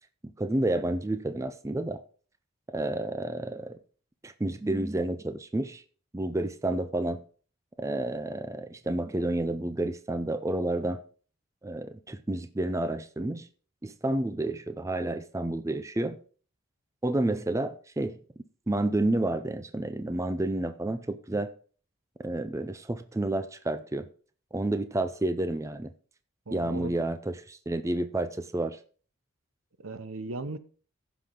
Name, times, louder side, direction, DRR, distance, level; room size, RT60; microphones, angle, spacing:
voice 1, 0.4-2.0 2.7-3.8 4.2-5.8 6.1-7.2 7.8-11.0 11.6-13.5 13.8-16.2 17.0-18.2 18.7-21.5 22.2-24.1 24.5-25.9 26.5-28.8, right 1 dB, 15° right, 0.4 m, -30 dB
voice 2, 26.5-26.9 29.8-30.6, right 2 dB, 80° right, 0.8 m, -37 dB
15.0 x 6.0 x 3.7 m
head